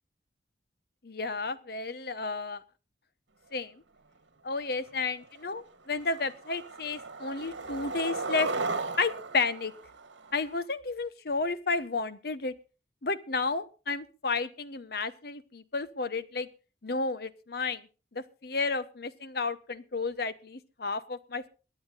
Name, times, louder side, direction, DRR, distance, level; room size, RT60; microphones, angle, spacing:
voice 1, 1.0-2.6 3.5-3.8 4.4-8.5 9.0-9.7 10.3-12.5 13.0-16.5 16.8-17.8 18.1-21.5, left 4 dB, 55° left, 13 dB, 0.9 m, -32 dB
Skateboard, 4.9-5.0 5.4-5.7 6.0-10.6, right 3 dB, 80° right, 2.1 m, -36 dB
22.5 x 9.4 x 4.0 m, 0.34 s
head